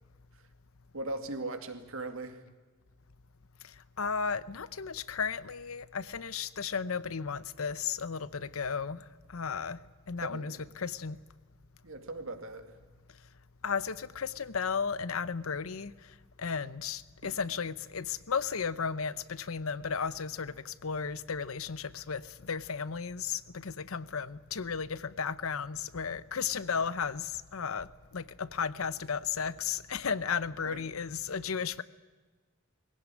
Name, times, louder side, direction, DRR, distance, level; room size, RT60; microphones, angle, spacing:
voice 1, 0.9-2.4 10.2-10.6 11.8-12.8 30.6-30.8, right 2 dB, 75° right, 2.4 m, -39 dB
voice 2, 3.6-9.8 10.1-11.2 13.6-15.9 16.4-31.8, left 6 dB, 85° left, 0.8 m, -34 dB
21.0 x 17.0 x 9.9 m
head